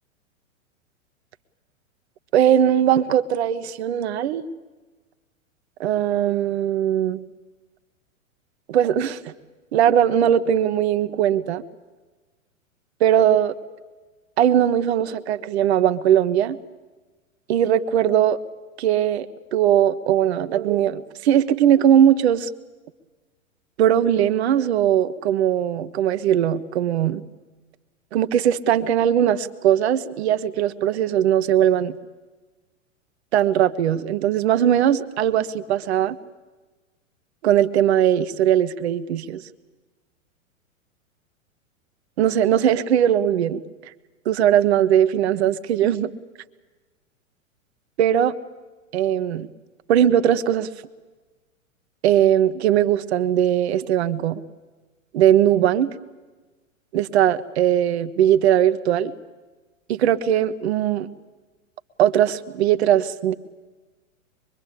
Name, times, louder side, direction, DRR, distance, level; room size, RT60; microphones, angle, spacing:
voice 1, 2.3-4.4 5.8-7.2 8.7-9.2 9.7-11.6 13.0-13.5 14.4-16.6 17.5-18.4 18.8-19.3 19.5-22.5 23.8-27.2 28.1-31.9 33.3-36.2 37.4-39.4 42.2-43.6 44.2-46.1 48.0-48.4 48.9-49.5 49.9-50.7 52.0-54.4 55.1-55.9 56.9-59.1 59.9-61.1 62.0-63.3, right 10 dB, 50° right, 11 dB, 1.2 m, -19 dB
24.5 x 23.0 x 8.6 m, 1.2 s
figure-of-eight pair, 100°, 40 cm